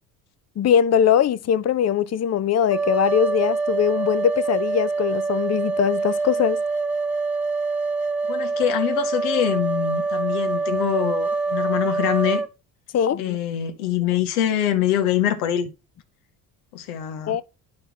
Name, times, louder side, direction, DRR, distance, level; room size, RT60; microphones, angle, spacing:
voice 1, 0.6-6.6 12.9-13.4 17.3-17.4, left 9 dB, 35° left, 0.7 m, -21 dB
sound 1, 2.7-12.5, right 3 dB, ahead, 1.4 m, -25 dB
voice 2, 8.3-12.4 13.2-15.7 16.7-17.4, left 11 dB, 85° left, 1.5 m, -24 dB
11.5 x 4.3 x 3.0 m
hypercardioid pair, 70°, 46 cm